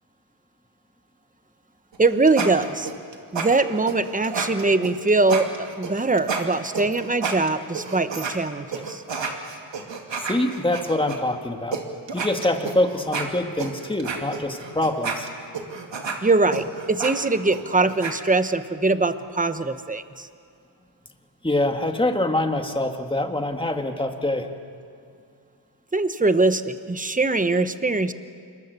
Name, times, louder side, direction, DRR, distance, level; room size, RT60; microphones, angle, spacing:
sound 1, 1.9-8.3 8.7-11.2 11.7-11.8 12.1-18.1, right 5 dB, 80° right, 2.5 m, -30 dB
voice 1, 2.0-2.9 3.3-9.0 16.2-20.3 25.9-28.1, right 3 dB, 20° right, 11 dB, 1.0 m, -22 dB
voice 2, 10.2-11.8 12.1-15.3 21.4-24.5, left 1 dB, 10° left, 4 dB, 1.9 m, -24 dB
27.0 x 22.5 x 6.9 m, 2.3 s
wide cardioid pair, 95°, 44 cm